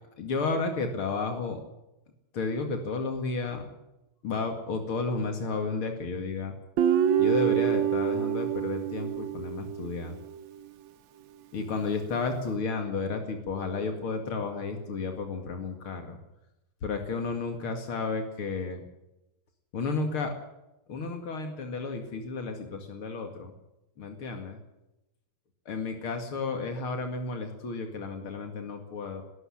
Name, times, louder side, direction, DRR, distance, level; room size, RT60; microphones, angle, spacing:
voice 1, 0.2-1.6 2.3-3.6 4.2-6.5 7.2-10.2 11.5-16.2 16.8-18.8 19.7-20.3 20.9-23.5 24.0-24.6 25.7-29.2, left 4 dB, 85° left, 5 dB, 3.0 m, -32 dB
Guitar, 6.8-10.1, right 10 dB, 70° right, 1.7 m, -26 dB
21.0 x 12.5 x 10.0 m, 0.93 s
omnidirectional pair, 2.3 m